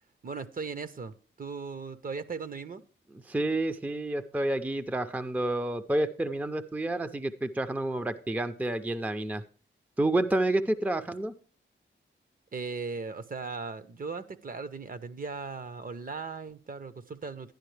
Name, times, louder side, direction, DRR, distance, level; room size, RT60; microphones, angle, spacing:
voice 1, 0.2-2.8 12.5-17.5, right 4 dB, 45° right, 12 dB, 0.7 m, -38 dB
voice 2, 3.3-9.4 10.0-11.3, right 1 dB, 10° right, 10 dB, 0.5 m, -29 dB
11.5 x 10.5 x 3.3 m, 0.37 s
wide cardioid pair, 150°, 21 cm